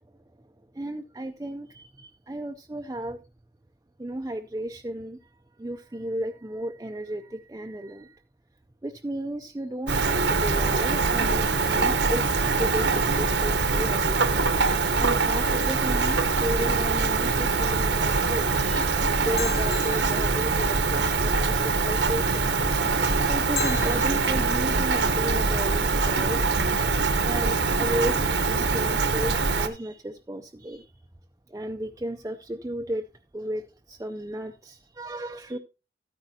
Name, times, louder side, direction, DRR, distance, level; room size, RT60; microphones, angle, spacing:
voice 1, 0.7-3.2 4.0-5.3 5.6-8.2 8.8-14.4 15.0-22.5 23.1-26.4 27.2-30.9 31.5-33.1 33.3-35.6, right 1 dB, 15° right, 0.4 m, -34 dB
Rain, 9.9-29.7, right 4 dB, 75° right, 1.1 m, -23 dB
sound 1, 15.6-17.1 19.4-21.0 23.6-24.6, left 9 dB, 65° left, 2.1 m, -39 dB
13.0 x 9.7 x 2.8 m
head